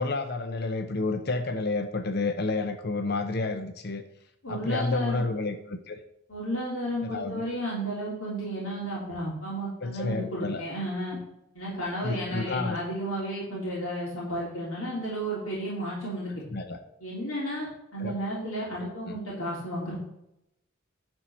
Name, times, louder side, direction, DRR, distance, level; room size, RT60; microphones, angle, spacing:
voice 1, 0.0-4.0 4.5-6.0 7.0-7.4 9.8-10.6 12.0-12.8 16.5-16.8 18.0-18.1 19.1-19.2, left 3 dB, 50° left, 7 dB, 0.8 m, -30 dB
voice 2, 4.4-5.2 6.3-11.2 11.5-16.3 17.0-20.0, right 1 dB, 75° left, -6 dB, 3.3 m, -33 dB
10.5 x 4.5 x 7.1 m, 0.82 s
head